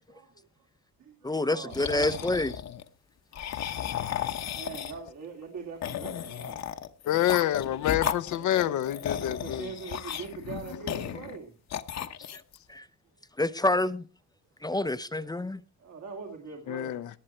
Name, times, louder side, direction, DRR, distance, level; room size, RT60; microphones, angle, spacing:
voice 1, 0.1-0.7 1.0-2.5 4.5-6.7 8.4-11.6 13.1-13.2 15.8-17.1, right 5 dB, 70° right, 2.9 m, -42 dB
voice 2, 1.2-2.5 12.7-12.8 13.4-14.0 14.6-15.6, left 2 dB, 15° left, 0.6 m, -27 dB
sound 1, 1.7-2.8 3.3-5.1 5.8-11.4 11.7-12.6, left 9 dB, 60° left, 1.1 m, -34 dB
voice 3, 7.1-9.7 16.7-17.1, left 12 dB, 75° left, 0.8 m, -27 dB
19.0 x 7.7 x 4.4 m
cardioid pair, 90°, 30 cm